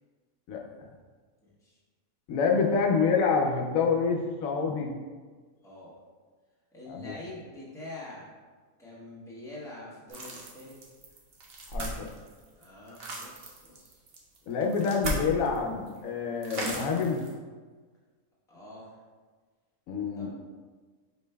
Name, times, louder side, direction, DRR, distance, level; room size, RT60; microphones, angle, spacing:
voice 1, 1.4-1.7 5.6-6.0 6.7-8.3 8.8-10.8 12.6-14.0 18.5-19.0 20.1-20.3, left 2 dB, 5° left, -7 dB, 1.0 m, -45 dB
voice 2, 2.3-4.9 6.9-7.1 11.7-12.1 14.5-17.2 19.9-20.3, left 5 dB, 85° left, 1 dB, 1.0 m, -27 dB
sound 1, 10.1-15.6 15.9-16.0 16.4-17.3, right 1 dB, 55° right, 0.9 m, -37 dB
5.0 x 4.5 x 2.2 m, 1.4 s
omnidirectional pair, 1.4 m